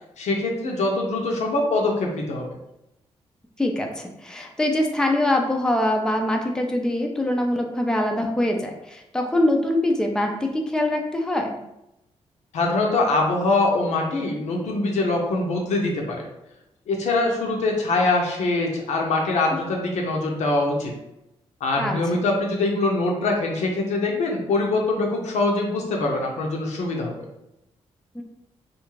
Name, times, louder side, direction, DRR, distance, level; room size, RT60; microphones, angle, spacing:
voice 1, 0.2-2.5 12.5-16.2 16.9-20.9 21.6-27.1, left 2 dB, 80° left, 0 dB, 0.6 m, -23 dB
voice 2, 3.6-11.6 21.8-22.2 28.1-28.2, left 1 dB, 5° left, 2 dB, 0.4 m, -23 dB
2.5 x 2.3 x 3.0 m, 0.88 s
cardioid pair, 65°, 12 cm